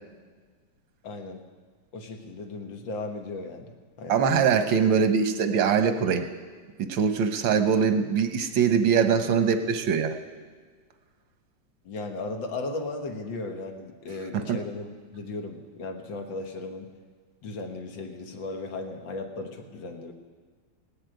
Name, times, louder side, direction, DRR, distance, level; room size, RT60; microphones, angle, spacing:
voice 1, 1.0-1.4 1.9-4.2 11.8-16.9 17.4-20.1, left 3 dB, 85° left, 4 dB, 2.1 m, -36 dB
voice 2, 4.1-6.2 6.8-10.1 14.3-14.6, right 6 dB, 90° right, 7 dB, 1.8 m, -23 dB
18.0 x 6.6 x 9.1 m, 1.5 s
omnidirectional pair, 2.0 m